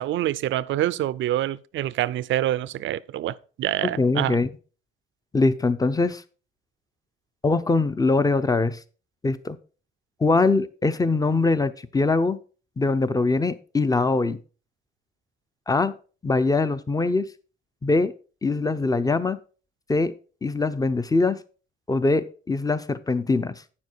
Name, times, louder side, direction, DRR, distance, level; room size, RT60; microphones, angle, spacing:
voice 1, 0.0-4.4, right 13 dB, 75° right, 0.5 m, -26 dB
voice 2, 3.8-4.5 5.3-6.2 7.4-8.8 9.2-9.6 10.2-12.4 12.8-14.4 15.7-15.9 16.2-17.3 17.8-18.1 18.4-19.4 19.9-20.1 20.4-21.4 21.9-23.5, left 3 dB, 20° left, 0.8 m, -22 dB
9.6 x 7.1 x 4.6 m
cardioid pair, 90°, 20 cm